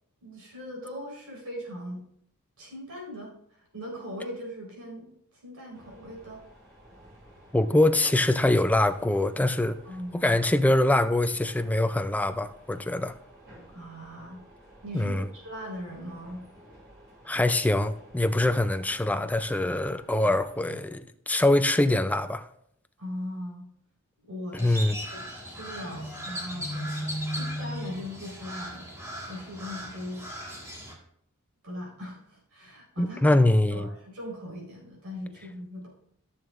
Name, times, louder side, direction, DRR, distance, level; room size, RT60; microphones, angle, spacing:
voice 1, 0.2-2.0 2.6-5.1 5.4-6.4 9.8-10.4 13.7-14.4 14.8-16.4 20.2-20.4 20.7-20.8 23.0-23.7 24.2-24.7 25.1-28.9 29.3-30.2 31.6-33.4 33.7-35.9, equal, 75° right, 4.2 m, -39 dB
sound 1, 5.7-20.6, equal, 55° right, 3.8 m, -53 dB
voice 2, 7.5-9.8 10.1-13.1 14.9-15.3 17.3-22.5 24.5-25.0 33.0-33.9, left 1 dB, 5° left, 0.4 m, -24 dB
Crow, 24.6-30.9, equal, 15° right, 1.7 m, -36 dB
14.0 x 7.0 x 2.5 m
head